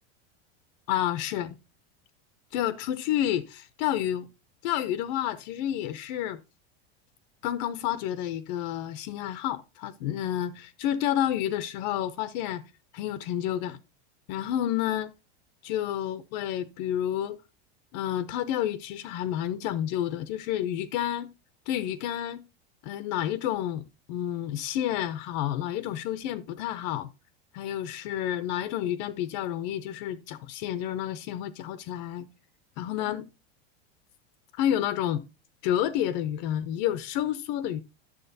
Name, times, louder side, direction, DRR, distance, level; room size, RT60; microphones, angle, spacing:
voice 1, 0.9-1.6 2.5-4.3 4.6-6.4 7.4-12.6 12.9-13.8 14.3-15.1 15.6-17.4 17.9-21.3 21.7-22.4 22.8-27.1 27.5-32.3 32.8-33.3 34.6-35.2 35.6-37.8, left 11 dB, 45° left, 0.5 m, -30 dB
10.0 x 7.1 x 2.6 m
supercardioid pair, 165°, 32 cm